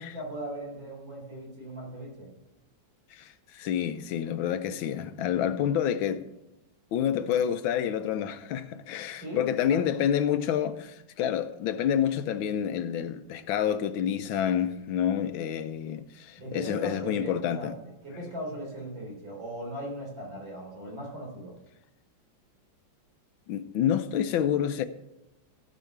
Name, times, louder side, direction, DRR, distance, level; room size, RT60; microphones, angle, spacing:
voice 1, 0.0-2.3 9.2-9.4 9.7-10.0 16.4-21.5, right 1 dB, 70° right, 4.6 m, -38 dB
voice 2, 3.1-6.2 6.9-17.7 23.5-24.8, left 9 dB, 90° left, 1.5 m, -28 dB
14.5 x 5.6 x 6.0 m
omnidirectional pair, 2.1 m